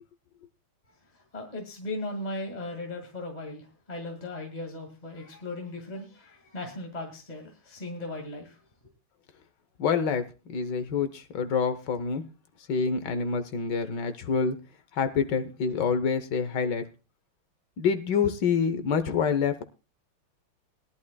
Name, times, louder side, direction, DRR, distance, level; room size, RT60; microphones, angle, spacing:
voice 1, 1.3-8.6, left 2 dB, 20° left, 2 dB, 2.0 m, -37 dB
voice 2, 9.8-12.2 12.7-14.6 15.0-16.8 17.8-19.6, left 6 dB, 60° left, 10 dB, 1.5 m, -27 dB
21.0 x 11.5 x 2.3 m, 0.30 s
omnidirectional pair, 2.4 m